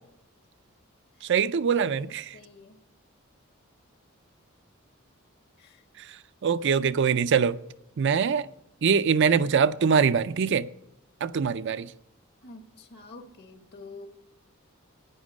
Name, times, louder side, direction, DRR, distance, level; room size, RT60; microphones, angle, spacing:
voice 1, 1.2-2.4 6.0-6.1 6.4-7.6 8.0-8.5 8.8-10.7 11.2-11.9, right 6 dB, 60° right, 0.4 m, -23 dB
voice 2, 2.3-2.8 5.6-5.8 12.4-14.1, left 3 dB, 55° left, 1.4 m, -47 dB
12.5 x 9.5 x 6.2 m
head